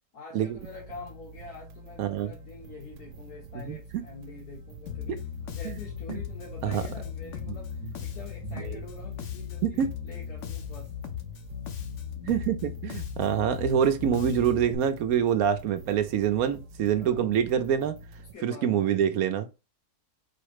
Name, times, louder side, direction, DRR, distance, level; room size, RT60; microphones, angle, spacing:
voice 1, 0.1-10.9 17.0-17.3 18.3-19.0, left 4 dB, 80° left, 1.9 m, -46 dB
sound 1, 0.5-18.3, right 3 dB, 90° right, 1.2 m, -47 dB
voice 2, 2.0-2.3 3.6-3.8 5.6-5.7 6.1-6.2 6.6-6.8 9.6-9.9 12.2-18.0 18.4-19.5, right 9 dB, 75° right, 1.0 m, -25 dB
Bass guitar, 4.9-14.8, left 9 dB, 60° left, 0.9 m, -37 dB
4.8 x 2.1 x 4.7 m
omnidirectional pair, 1.6 m